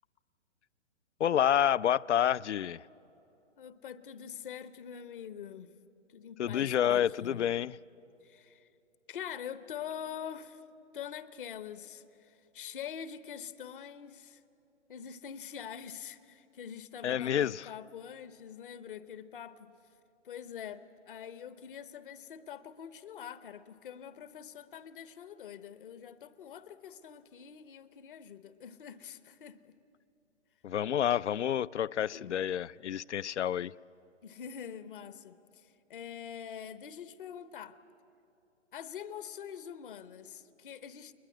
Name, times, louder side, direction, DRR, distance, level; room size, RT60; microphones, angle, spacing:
voice 1, 1.2-2.8 6.4-7.8 17.0-17.7 30.6-33.7, left 10 dB, 70° left, 21 dB, 0.5 m, -29 dB
voice 2, 3.6-5.7 6.1-7.5 8.2-8.7 9.1-10.6 10.9-14.4 14.9-19.7 20.2-29.7 32.1-32.4 34.2-37.8 38.7-41.1, left 8 dB, 45° left, 13 dB, 0.9 m, -45 dB
21.5 x 21.0 x 9.7 m, 2.8 s
figure-of-eight pair, 125°, 36 cm